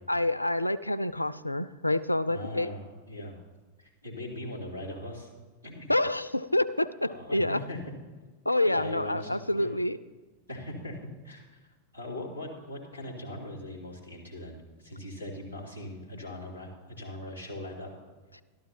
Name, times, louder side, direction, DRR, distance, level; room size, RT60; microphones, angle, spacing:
voice 1, 0.1-2.7 5.9-7.6 8.5-10.0, left 1 dB, 85° left, 17 dB, 0.3 m, -27 dB
voice 2, 2.3-3.4 3.8-5.3 5.6-5.9 7.0-7.8 8.7-9.7 10.5-11.0 11.2-11.6 11.9-17.9, left 1 dB, 85° right, -3 dB, 2.7 m, -40 dB
13.0 x 12.5 x 2.8 m, 1.3 s
figure-of-eight pair, 90°, 0 cm